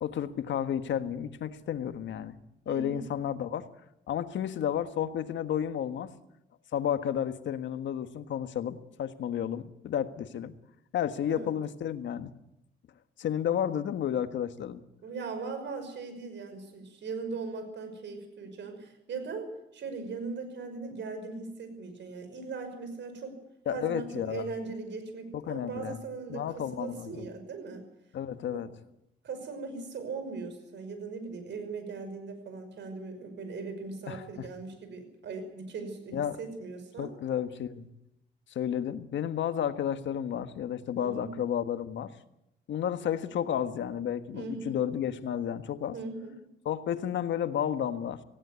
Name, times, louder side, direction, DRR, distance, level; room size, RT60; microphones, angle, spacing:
voice 1, 0.0-2.4 2.6-3.7 4.1-6.1 6.7-10.5 10.9-12.3 13.2-14.8 23.6-24.5 25.3-26.0 26.3-27.2 28.1-28.7 34.1-34.2 36.1-36.4 37.0-37.9 38.5-42.1 42.7-45.9 46.6-48.2, left 9 dB, 70° left, 10 dB, 1.5 m, -32 dB
voice 2, 2.7-3.1 11.3-11.5 15.0-23.4 23.7-27.8 28.5-28.6 29.2-37.1 41.0-41.3 44.3-44.8 45.9-46.4, right 4 dB, 65° right, 8 dB, 5.8 m, -39 dB
18.0 x 17.0 x 9.4 m, 0.83 s
cardioid pair, 90°, 20 cm